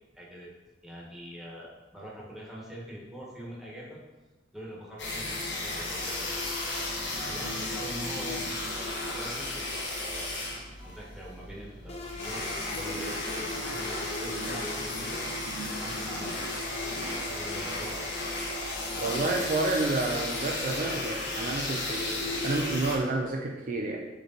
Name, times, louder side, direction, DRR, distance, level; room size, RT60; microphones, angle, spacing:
voice 1, 0.1-0.5 0.8-4.0 4.5-6.4 7.1-10.6 10.8-13.1 13.5-15.2 15.6-16.6 17.0-18.1 18.9-19.5, right 1 dB, ahead, -5 dB, 1.4 m, -43 dB
sound 1, 5.0-23.0, left 2 dB, 80° left, 1.3 m, -34 dB
sound 2, 11.9-15.5, left 2 dB, 35° left, 0.8 m, -42 dB
voice 2, 19.0-24.0, right 2 dB, 50° right, 1 dB, 0.5 m, -30 dB
7.8 x 3.3 x 4.0 m, 1.2 s
head